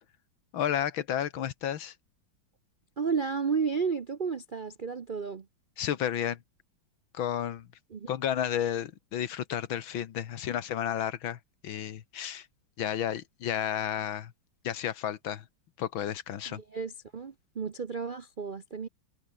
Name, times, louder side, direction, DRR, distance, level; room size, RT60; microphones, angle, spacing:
voice 1, 0.5-1.9 5.8-6.4 7.1-7.7 8.1-12.5 12.8-14.3 14.6-15.4 15.8-16.6, left 10 dB, 80° left, 2.0 m, -32 dB
voice 2, 3.0-5.5 7.9-8.1 16.5-18.9, right 5 dB, 65° right, 0.4 m, -32 dB
omnidirectional pair, 2.2 m